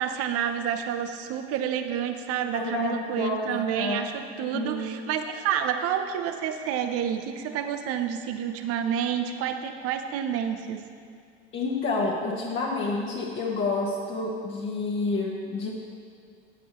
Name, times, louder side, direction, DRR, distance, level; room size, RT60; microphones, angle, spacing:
voice 1, 0.0-10.8, right 8 dB, 50° right, 8 dB, 0.9 m, -29 dB
voice 2, 2.5-4.0 4.4-4.9 11.5-15.7, left 3 dB, 40° left, -4 dB, 1.5 m, -29 dB
15.0 x 7.9 x 3.2 m, 2.2 s
hypercardioid pair, 80°, 31 cm